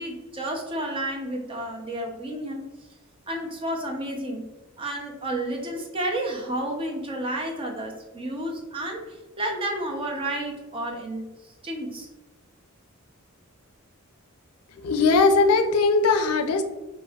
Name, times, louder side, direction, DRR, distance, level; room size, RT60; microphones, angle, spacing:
voice 1, 0.0-2.6 3.3-4.4 4.8-11.2 11.6-12.1, right 1 dB, 25° right, 1 dB, 0.6 m, -31 dB
voice 2, 14.8-16.6, left 4 dB, 85° left, 8 dB, 0.4 m, -19 dB
5.3 x 2.6 x 2.3 m, 1.1 s
head